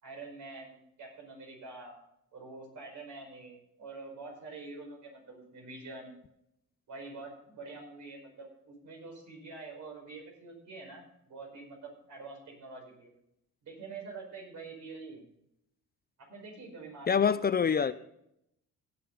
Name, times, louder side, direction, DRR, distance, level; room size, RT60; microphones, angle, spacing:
voice 1, 0.0-1.9 2.3-6.1 6.9-13.1 13.6-15.2 16.2-17.9, right 3 dB, 70° right, 4.9 m, -46 dB
voice 2, 17.1-17.9, left 6 dB, 30° left, 0.5 m, -25 dB
17.0 x 7.8 x 3.9 m
cardioid pair, 90°, 30 cm